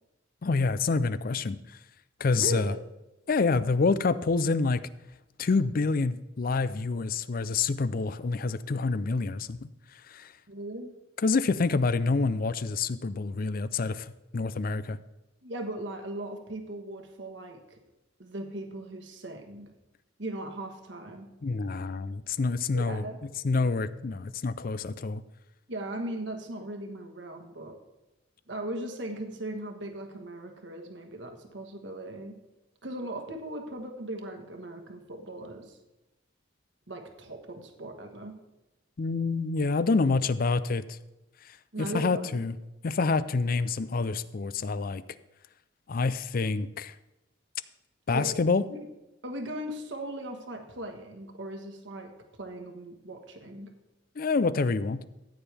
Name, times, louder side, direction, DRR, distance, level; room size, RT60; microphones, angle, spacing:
voice 1, 0.4-1.8 2.2-2.7 3.3-4.9 5.4-9.7 10.1-10.3 11.2-15.0 21.4-23.0 23.4-25.2 39.0-41.0 41.8-42.5 42.8-45.0 45.9-46.9 48.1-48.6 54.2-55.0, left 4 dB, 50° left, 15 dB, 0.5 m, -27 dB
voice 2, 2.4-2.8 10.5-10.9 15.4-17.8 18.2-19.7 20.2-21.3 22.7-23.2 25.7-27.8 28.5-32.4 32.8-35.8 36.9-38.4 41.7-42.3 48.1-48.4 48.7-48.8 49.2-52.1 52.4-53.7, right 1 dB, 70° right, 5 dB, 1.4 m, -38 dB
14.0 x 8.9 x 3.5 m, 0.97 s
head